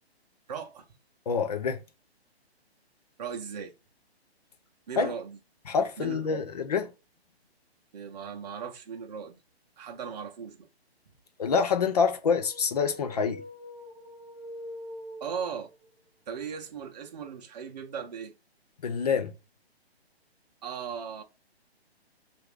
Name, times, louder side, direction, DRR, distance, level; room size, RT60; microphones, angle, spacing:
voice 1, 0.5-0.9 3.2-3.7 4.9-5.4 6.0-6.5 7.9-9.4 9.8-10.7 15.2-15.7 16.3-18.3 20.6-21.2, right 6 dB, 40° right, 0.6 m, -37 dB
voice 2, 1.3-1.8 5.0-5.1 5.7-6.8 11.4-13.4 18.8-19.3, left 5 dB, 40° left, 0.4 m, -26 dB
sound 1, 12.2-15.9, left 1 dB, 15° right, 0.9 m, -44 dB
2.9 x 2.5 x 3.2 m
hypercardioid pair, 160°, 32 cm